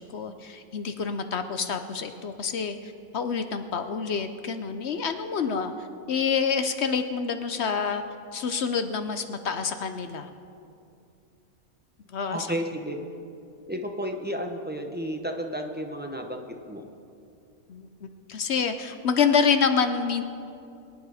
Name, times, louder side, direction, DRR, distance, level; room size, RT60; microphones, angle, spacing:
voice 1, 0.0-8.0 8.3-10.3 12.1-12.5 17.7-20.2, left 6 dB, 55° left, 9 dB, 0.8 m, -27 dB
voice 2, 12.3-13.0 13.7-16.8, equal, 10° right, 3 dB, 0.6 m, -32 dB
23.5 x 9.2 x 4.9 m, 2.6 s
omnidirectional pair, 1.6 m